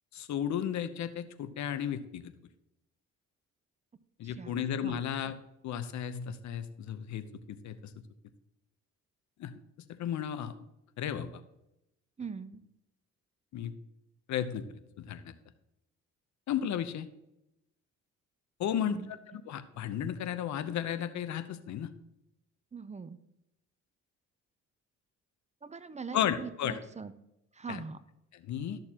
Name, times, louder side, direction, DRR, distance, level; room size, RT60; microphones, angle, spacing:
voice 1, 0.1-2.3 4.2-5.3 5.6-7.9 9.4-9.5 10.0-10.5 11.0-11.4 13.5-13.7 14.3-15.3 16.5-17.1 18.6-21.9 26.1-26.8 27.7-27.8 28.3-28.8, left 9 dB, 70° left, 12 dB, 0.8 m, -34 dB
voice 2, 4.2-4.6 4.8-5.0 12.2-12.6 18.7-19.1 22.7-23.2 25.6-27.1 27.5-28.0, right 5 dB, 25° right, 13 dB, 0.5 m, -42 dB
13.0 x 6.6 x 2.9 m, 0.87 s
cardioid pair, 90°, 30 cm